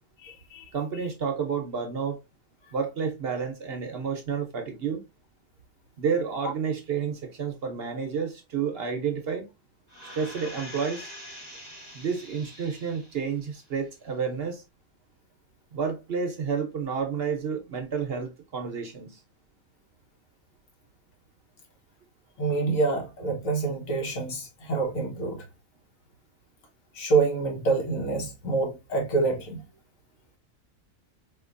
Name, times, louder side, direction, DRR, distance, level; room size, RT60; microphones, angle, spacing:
voice 1, 0.2-0.6 22.4-25.4 26.9-29.6, right 4 dB, 75° left, 1.5 m, -27 dB
voice 2, 0.7-2.2 2.7-5.0 6.0-9.5 10.1-11.1 11.9-14.6 15.7-19.2, right 6 dB, 55° right, 0.8 m, -30 dB
sound 1, 9.9-13.3 13.7-13.8, equal, 30° left, 1.4 m, -44 dB
4.4 x 2.9 x 2.4 m
omnidirectional pair, 1.4 m